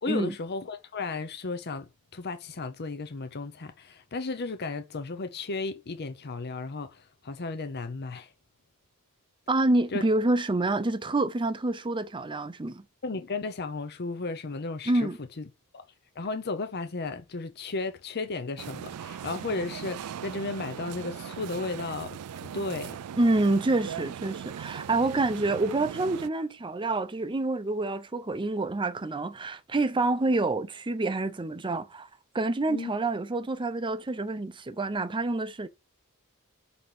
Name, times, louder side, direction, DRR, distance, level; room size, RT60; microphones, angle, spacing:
voice 1, 0.0-8.3 9.9-10.1 13.0-15.1 15.4-15.5 15.7-15.8 16.2-23.0 32.7-32.9, left 3 dB, 50° left, 0.7 m, -34 dB
voice 2, 9.5-12.8 14.9-15.2 23.2-32.1 32.3-35.7, right 2 dB, 20° right, 0.6 m, -27 dB
sound 1, 18.6-26.3, right 8 dB, 85° right, 0.4 m, -39 dB
5.6 x 4.3 x 4.8 m
head